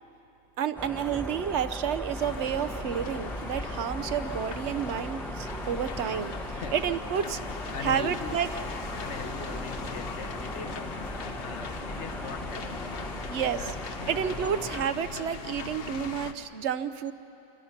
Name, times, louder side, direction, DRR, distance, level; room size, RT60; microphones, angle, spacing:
voice 1, 0.6-7.4 7.8-8.5 13.3-13.6 14.1-17.1, right 8 dB, 75° right, 12 dB, 1.0 m, -30 dB
sound 1, 0.8-14.9, equal, ahead, 0.7 m, -38 dB
sound 2, 2.2-16.3, left 5 dB, 55° left, 1.1 m, -40 dB
voice 2, 7.7-8.4 9.0-13.1 13.5-14.1, left 6 dB, 75° left, 7 dB, 1.3 m, -41 dB
26.5 x 21.5 x 5.8 m, 3.0 s
omnidirectional pair, 1.2 m